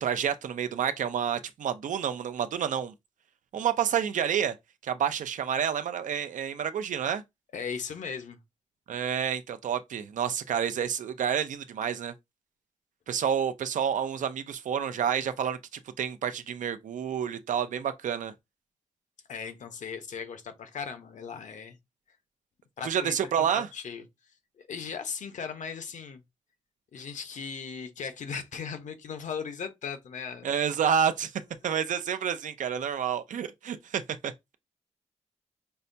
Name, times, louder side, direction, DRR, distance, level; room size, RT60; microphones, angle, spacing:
voice 1, 0.0-2.9 3.5-4.5 4.8-7.2 8.9-12.1 13.1-15.6 16.0-18.3 22.8-23.7 30.4-34.3, right 8 dB, 85° right, 0.5 m, -29 dB
voice 2, 7.5-8.4 19.3-21.8 22.8-24.0 24.6-26.2 26.9-30.5, left 6 dB, 75° left, 0.8 m, -38 dB
5.4 x 2.2 x 2.6 m
wide cardioid pair, 135°, 13 cm